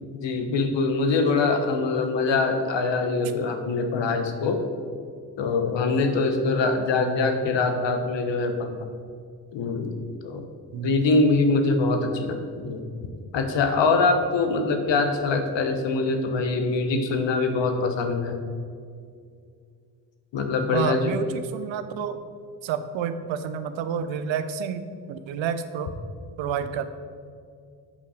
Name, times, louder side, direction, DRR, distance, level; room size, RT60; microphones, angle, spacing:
voice 1, 0.1-4.6 5.4-8.7 9.5-9.9 10.2-10.4 10.8-12.8 13.3-18.4 20.3-21.1, left 3 dB, 65° left, 6 dB, 1.2 m, -23 dB
voice 2, 20.7-22.2 22.6-25.9 26.4-26.9, right 7 dB, 70° right, 10 dB, 0.7 m, -29 dB
8.4 x 5.5 x 5.0 m, 2.2 s
hypercardioid pair, 45°, 48 cm